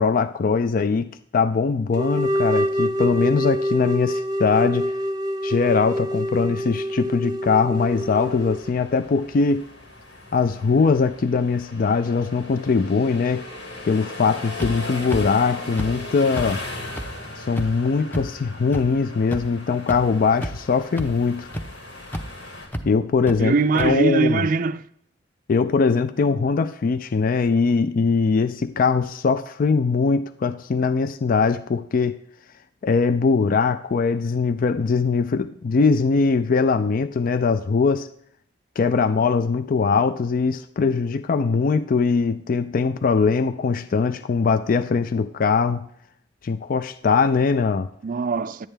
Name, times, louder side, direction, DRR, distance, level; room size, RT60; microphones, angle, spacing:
voice 1, 0.0-4.9 5.4-9.7 10.3-13.5 13.9-16.6 17.4-21.5 22.8-24.5 25.5-32.2 32.8-38.1 38.8-45.9 46.4-47.9, left 4 dB, 50° left, 0.4 m, -21 dB
sound 1, 1.9-8.7, equal, 20° right, 0.8 m, -26 dB
sound 2, 7.8-22.7, left 2 dB, 75° left, 2.4 m, -38 dB
sound 3, 14.6-14.7 15.1-15.2 15.8-15.9 16.3-16.5 17.0-17.1 17.6-17.7 18.1-18.2 18.7-18.8 19.3-19.4 19.9-20.0 20.4-20.7 21.0-21.1 21.5-21.6 22.1-22.2 22.7-22.8 23.3-23.4 23.8-23.9, equal, 10° left, 0.8 m, -29 dB
voice 2, 23.4-24.8 48.0-48.7, right 4 dB, 45° right, 0.4 m, -21 dB
11.0 x 9.0 x 3.4 m
head